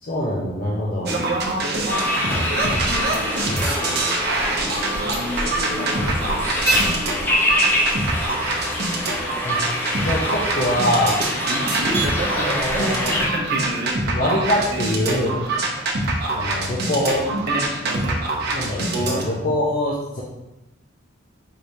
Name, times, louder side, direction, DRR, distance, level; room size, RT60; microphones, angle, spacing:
voice 1, 0.0-1.2 9.4-9.6 10.0-11.2 12.3-13.2 14.1-15.4 16.4-17.2 18.5-20.2, left 1 dB, 50° left, -6 dB, 0.7 m, -23 dB
sound 1, 1.1-19.2, right 2 dB, 60° right, 0.8 m, -24 dB
sound 2, 1.9-13.3, left 1 dB, 10° left, 0.7 m, -25 dB
voice 2, 2.9-4.1 4.4-7.5, left 1 dB, 65° left, -3 dB, 1.2 m, -37 dB
4.7 x 3.2 x 2.7 m, 0.95 s
head